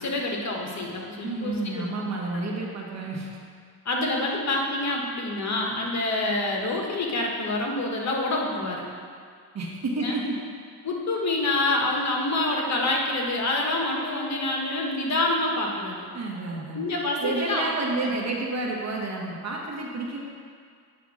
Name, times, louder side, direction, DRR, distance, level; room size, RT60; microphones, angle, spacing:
voice 1, 0.0-1.9 2.3-2.4 3.8-8.8 10.0-10.2 10.8-16.1 16.7-17.6 18.0-18.1, left 2 dB, 50° left, 0 dB, 1.3 m, -27 dB
voice 2, 1.2-3.3 9.5-10.4 16.1-16.8 17.2-20.2, right 2 dB, 45° right, -2 dB, 1.4 m, -30 dB
8.4 x 3.5 x 6.3 m, 2.1 s
cardioid pair, 85°, 37 cm